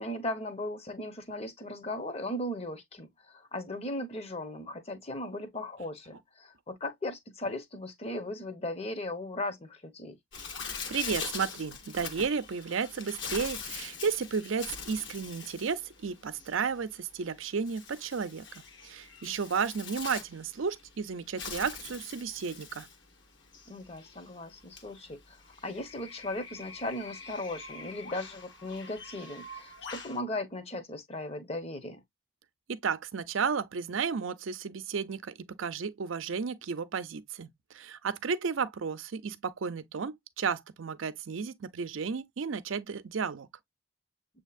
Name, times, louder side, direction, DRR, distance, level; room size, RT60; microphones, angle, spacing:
voice 1, 0.0-10.2 23.7-32.0, left 1 dB, 30° left, 0.8 m, -37 dB
Bird, 10.3-30.2, left 5 dB, 60° left, 1.1 m, -43 dB
voice 2, 10.9-18.5 18.8-22.9 32.7-37.5 37.7-43.5, right 5 dB, 80° right, 0.5 m, -33 dB
7.3 x 2.8 x 2.4 m
head